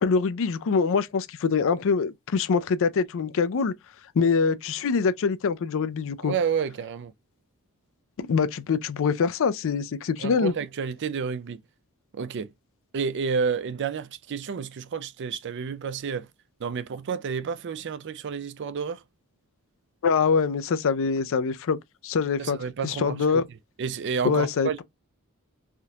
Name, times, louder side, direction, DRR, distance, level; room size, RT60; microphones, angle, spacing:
voice 1, 0.0-3.7 4.2-6.3 8.2-10.5 20.0-21.8 22.0-22.6 22.8-23.4 24.2-24.8, left 5 dB, 60° left, 0.4 m, -24 dB
voice 2, 6.2-7.1 10.2-11.6 12.1-12.5 12.9-16.3 16.6-19.0 22.4-23.4 23.8-24.8, right 6 dB, 55° right, 0.4 m, -30 dB
3.5 x 2.8 x 2.4 m
head